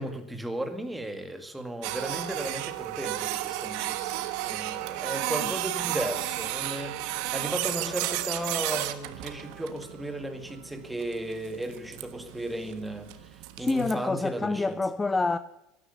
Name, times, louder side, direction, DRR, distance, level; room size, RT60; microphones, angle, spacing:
voice 1, 0.0-14.8, right 1 dB, 5° right, 2.0 m, -35 dB
Printer, 1.8-13.9, right 15 dB, 70° right, 1.3 m, -33 dB
voice 2, 13.6-15.4, left 3 dB, 15° left, 0.6 m, -27 dB
13.0 x 11.0 x 8.3 m
supercardioid pair, 110°, 0 cm